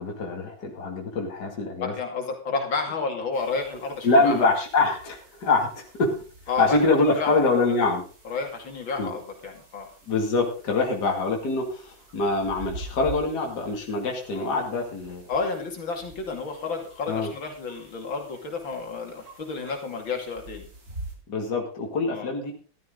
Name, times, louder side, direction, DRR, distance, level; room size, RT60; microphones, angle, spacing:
voice 1, 0.0-1.9 4.0-6.1 6.6-8.0 9.0-9.1 10.1-15.3 17.1-17.3 21.3-22.5, left 3 dB, 55° left, 1 dB, 2.8 m, -24 dB
voice 2, 1.8-4.5 6.5-7.8 8.2-9.9 14.4-14.5 15.3-20.7 22.1-22.3, left 4 dB, 75° left, 3 dB, 3.2 m, -31 dB
sound 1, 3.3-21.1, right 2 dB, 50° right, 4.0 m, -46 dB
14.0 x 13.0 x 3.9 m, 0.37 s
omnidirectional pair, 2.1 m